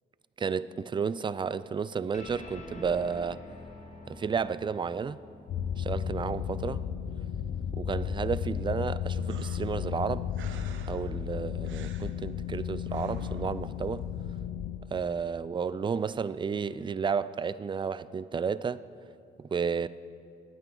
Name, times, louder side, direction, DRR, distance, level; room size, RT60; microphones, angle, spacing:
voice 1, 0.4-3.4 4.1-5.2 5.8-6.9 7.7-10.3 10.9-14.1 14.9-18.8 19.4-19.9, right 6 dB, 25° right, 0.4 m, -32 dB
sound 1, 2.1-8.9, left 2 dB, 35° left, 1.8 m, -49 dB
sound 2, 5.5-14.8, left 9 dB, 70° left, 0.8 m, -34 dB
sound 3, 9.3-14.4, right 7 dB, 75° right, 0.8 m, -49 dB
19.5 x 9.1 x 3.9 m
cardioid pair, 90°, 20 cm